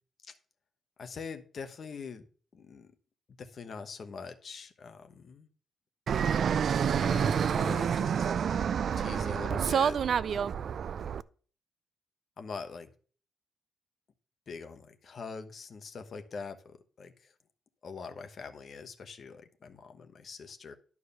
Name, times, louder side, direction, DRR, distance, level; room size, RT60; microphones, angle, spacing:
voice 1, 1.0-2.2 2.5-2.9 3.4-5.5 7.0-8.1 9.0-10.0 10.3-10.8 12.4-12.9 14.5-17.3 17.8-20.7, left 5 dB, 40° left, 8 dB, 1.1 m, -43 dB
Fixed-wing aircraft airplane, 6.1-11.2, right 7 dB, 45° right, 0.3 m, -28 dB
11.5 x 4.8 x 6.8 m, 0.42 s
wide cardioid pair, 170°, 0 cm